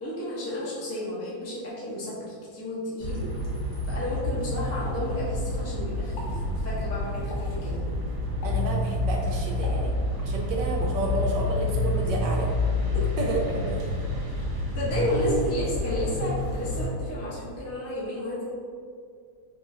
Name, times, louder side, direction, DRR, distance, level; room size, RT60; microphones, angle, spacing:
voice 1, 0.0-3.3 3.9-7.8 12.9-13.0 14.7-18.4, left 1 dB, 15° left, -8 dB, 0.5 m, -32 dB
sound 1, 3.0-16.9, left 1 dB, 50° right, 1.3 m, -28 dB
Explosion, 4.9-5.7 6.0-6.5 7.3-7.7 8.4-8.8 9.6-10.3 10.8-11.1, left 1 dB, 75° left, 1.4 m, -42 dB
voice 2, 8.4-12.5 13.2-13.8, right 2 dB, 75° right, -1 dB, 1.1 m, -31 dB
5.2 x 2.9 x 2.7 m, 2.2 s
omnidirectional pair, 2.2 m